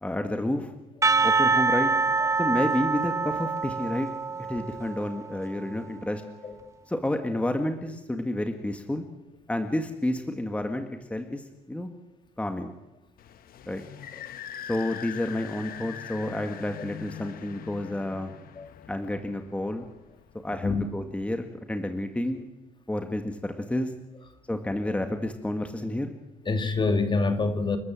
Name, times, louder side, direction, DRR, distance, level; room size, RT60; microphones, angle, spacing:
voice 1, 0.0-0.7 1.2-1.9 2.4-4.1 4.4-6.2 6.9-9.1 9.5-11.9 12.4-12.7 13.7-13.8 14.7-18.3 18.9-19.9 20.4-22.5 22.9-23.9 24.5-26.1, left 1 dB, 5° left, 6 dB, 1.9 m, -30 dB
Percussion / Church bell, 1.0-5.6, right 4 dB, 15° right, 1.1 m, -25 dB
sound 1, 13.2-20.5, left 9 dB, 60° left, 1.1 m, -42 dB
voice 2, 26.4-27.8, left 3 dB, 30° left, 8 dB, 2.4 m, -26 dB
29.5 x 13.0 x 7.8 m, 0.96 s
cardioid pair, 110°, 17 cm